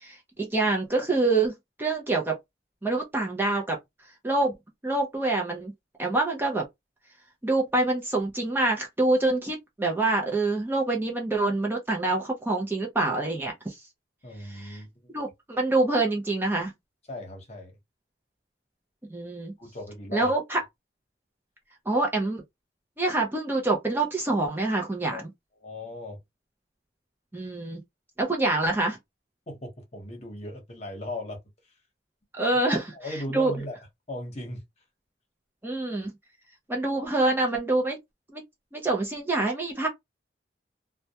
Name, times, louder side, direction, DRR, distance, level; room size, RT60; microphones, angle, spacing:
voice 1, 0.0-2.4 2.8-3.8 4.2-4.5 4.8-5.7 6.0-6.6 7.4-13.8 14.4-14.8 15.1-16.7 19.1-19.5 20.1-20.6 21.9-22.4 23.0-25.3 27.3-27.8 28.2-29.0 32.3-32.8 33.1-33.5 35.6-36.1 36.7-38.0 38.3-38.4 38.7-39.9, right 2 dB, 10° right, 0.5 m, -26 dB
voice 2, 14.2-15.1 17.1-17.7 19.6-20.3 25.1-25.2 25.6-26.2 29.5-31.4 31.6-31.7 32.5-33.8 34.1-34.6, left 1 dB, 40° left, 0.9 m, -37 dB
2.2 x 2.2 x 2.7 m
head